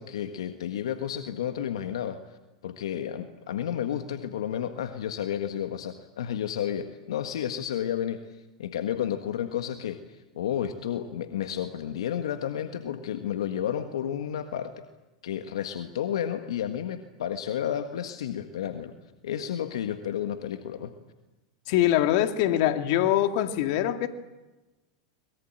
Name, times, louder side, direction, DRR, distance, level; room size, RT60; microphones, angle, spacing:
voice 1, 0.0-2.2 2.6-8.2 8.6-10.0 10.3-14.8 15.2-18.9 19.2-20.9, left 9 dB, 80° left, 7 dB, 1.6 m, -31 dB
voice 2, 21.7-24.1, left 12 dB, 60° left, 8 dB, 2.1 m, -23 dB
23.5 x 22.0 x 9.0 m, 1.1 s
hypercardioid pair, 100°, 3 cm